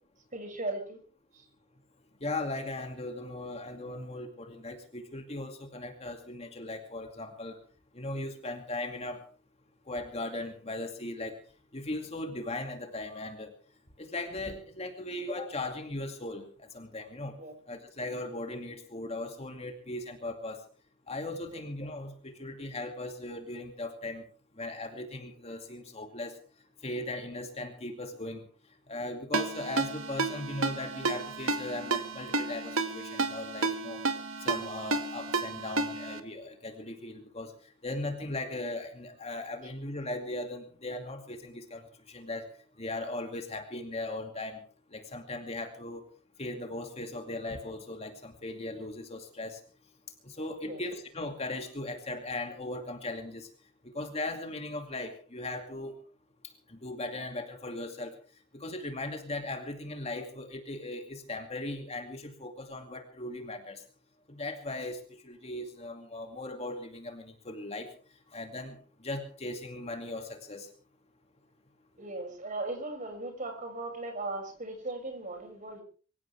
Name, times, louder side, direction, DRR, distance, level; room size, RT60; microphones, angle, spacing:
voice 1, 0.3-1.0 1.3-1.4 17.4-17.5 21.5-21.6 50.6-50.8 72.0-75.8, right 2 dB, 35° right, 5 dB, 6.4 m, -37 dB
voice 2, 2.2-7.6 7.9-9.2 9.9-11.4 11.7-13.5 14.0-17.3 17.7-20.6 21.1-24.2 24.6-26.4 26.8-28.4 28.9-34.0 34.4-37.5 37.8-42.5 42.8-44.6 44.9-46.1 46.4-49.6 50.2-53.5 53.9-55.9 56.7-58.1 58.5-63.8 64.3-67.9 68.3-70.7, left 2 dB, 30° left, 4 dB, 2.4 m, -38 dB
Ringtone, 29.3-36.2, right 3 dB, 80° right, 1.9 m, -32 dB
24.5 x 16.0 x 3.5 m, 0.40 s
head